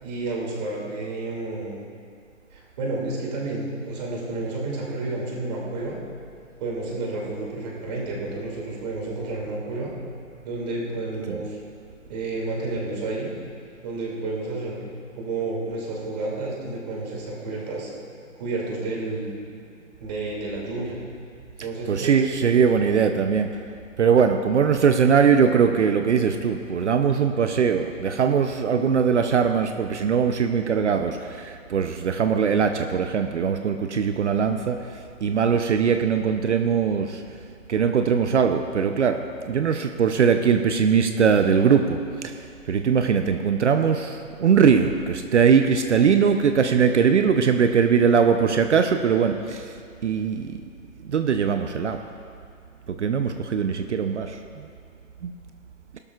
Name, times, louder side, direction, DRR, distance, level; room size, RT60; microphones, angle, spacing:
voice 1, 0.0-1.8 2.5-6.0 6.6-9.9 10.4-11.6 12.1-13.3 13.8-14.9 15.1-17.9 18.4-19.3 20.0-21.0 21.6-22.3, right 2 dB, 30° right, -3 dB, 2.6 m, -30 dB
voice 2, 21.9-23.6 24.0-34.8 35.2-37.2 37.7-42.3 42.7-49.7 50.0-50.6 51.1-52.0 52.9-54.4 55.2-55.3, right 6 dB, 60° right, 7 dB, 0.7 m, -21 dB
19.5 x 12.5 x 2.4 m, 2.3 s
hypercardioid pair, 160°, 41 cm